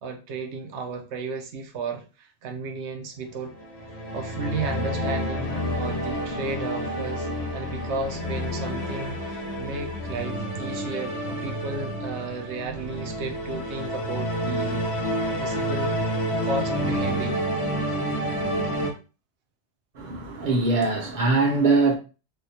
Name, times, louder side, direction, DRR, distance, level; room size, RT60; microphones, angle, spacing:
voice 1, 0.0-3.5 4.1-14.8 15.4-15.9 16.3-17.5, right 3 dB, 75° right, 1.0 m, -34 dB
sound 1, 3.5-18.9, equal, 70° left, 1.1 m, -29 dB
voice 2, 19.9-22.0, right 3 dB, 50° right, 0.8 m, -22 dB
3.4 x 2.3 x 2.7 m
omnidirectional pair, 1.2 m